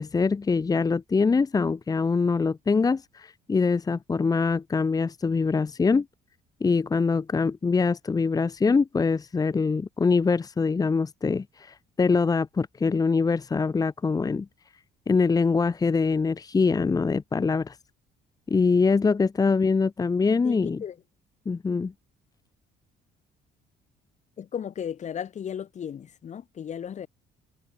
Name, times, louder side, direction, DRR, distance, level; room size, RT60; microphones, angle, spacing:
voice 1, 0.0-6.1 6.6-14.5 15.1-17.8 18.5-20.8 21.5-21.9, left 4 dB, 20° left, 1.0 m, -24 dB
voice 2, 20.4-21.0 24.4-27.1, left 8 dB, 45° left, 1.9 m, -35 dB
cardioid pair, 110°, 17 cm